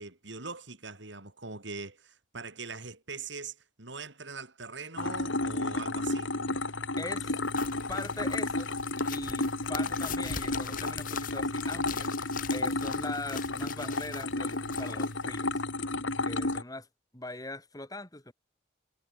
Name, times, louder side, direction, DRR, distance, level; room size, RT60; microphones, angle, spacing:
voice 1, 0.0-6.3, right 4 dB, 70° right, 4.2 m, -42 dB
sound 1, 5.0-16.6, left 2 dB, 85° left, 3.3 m, -32 dB
voice 2, 7.0-7.4 7.9-8.7 9.1-15.6 16.2-16.9 17.1-18.3, left 2 dB, 20° left, 2.8 m, -41 dB
sound 2, 7.4-15.6, left 7 dB, 45° left, 3.7 m, -43 dB
head